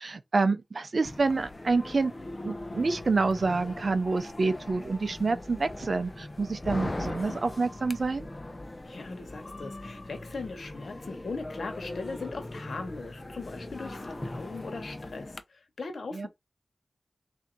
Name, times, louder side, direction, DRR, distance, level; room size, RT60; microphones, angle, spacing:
voice 1, 0.0-2.1 2.4-8.3 16.1-16.3, right 3 dB, 60° right, 0.6 m, -28 dB
sound 1, 1.1-15.4, left 2 dB, 30° left, 0.7 m, -40 dB
voice 2, 8.8-16.3, left 3 dB, 75° left, 1.2 m, -39 dB
3.8 x 2.8 x 3.9 m
wide cardioid pair, 65°, 0 cm